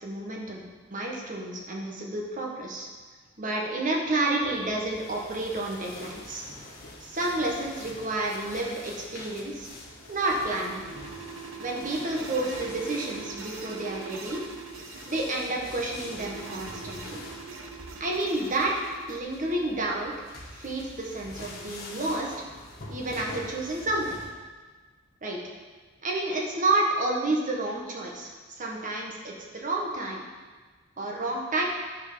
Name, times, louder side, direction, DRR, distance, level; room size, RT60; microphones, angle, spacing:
voice 1, 0.0-2.9 3.4-6.4 7.0-9.7 10.1-10.8 11.6-14.4 15.0-17.2 18.0-18.8 19.1-20.3 20.5-22.3 22.9-24.2 25.2-25.4 26.0-30.2 31.0-31.6, right 2 dB, 40° right, -1 dB, 1.6 m, -30 dB
sound 1, 4.4-24.3, left 2 dB, 50° left, 1.6 m, -45 dB
sound 2, 9.8-19.2, right 4 dB, 80° right, 1.0 m, -42 dB
11.5 x 4.7 x 5.7 m, 1.4 s
head